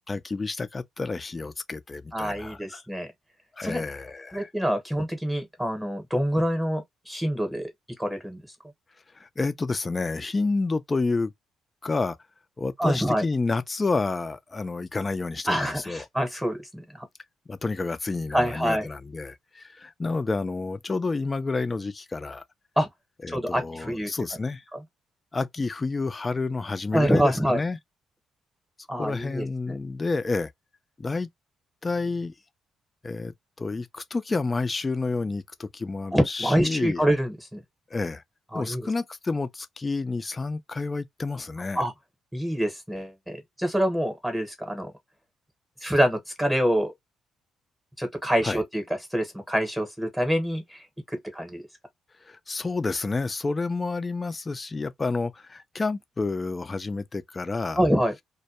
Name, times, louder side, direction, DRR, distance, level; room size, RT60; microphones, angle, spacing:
voice 1, 0.1-2.8 3.6-4.5 9.1-11.3 11.8-12.2 12.6-16.0 17.5-22.4 23.2-24.6 25.3-27.8 29.0-30.5 31.0-31.3 31.8-32.3 33.0-37.0 37.9-38.2 38.5-41.8 48.4-48.6 52.2-57.8, left 3 dB, 25° left, 0.4 m, -29 dB
voice 2, 2.1-3.1 3.6-3.8 4.3-7.7 8.0-8.4 12.8-13.2 15.5-17.1 18.3-18.9 22.8-22.9 23.3-24.1 26.9-27.6 28.9-29.8 36.1-37.6 38.5-38.9 41.7-41.9 42.3-44.9 45.8-46.9 48.0-48.8 49.1-50.8 51.1-51.6 57.8-58.1, equal, 5° right, 1.0 m, -26 dB
2.2 x 2.1 x 2.8 m
cardioid pair, 90°, 0 cm